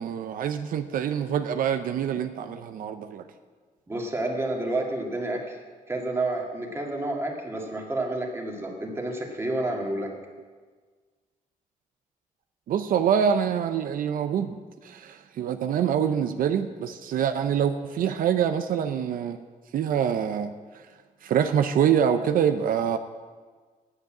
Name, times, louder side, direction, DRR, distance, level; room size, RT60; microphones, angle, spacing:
voice 1, 0.0-3.3 12.7-19.4 19.7-20.5 21.2-23.0, right 8 dB, 85° right, 8 dB, 0.6 m, -25 dB
voice 2, 3.9-5.6 5.9-10.1, right 2 dB, 20° right, 0 dB, 1.9 m, -29 dB
9.8 x 8.0 x 8.6 m, 1.5 s
wide cardioid pair, 140°, 14 cm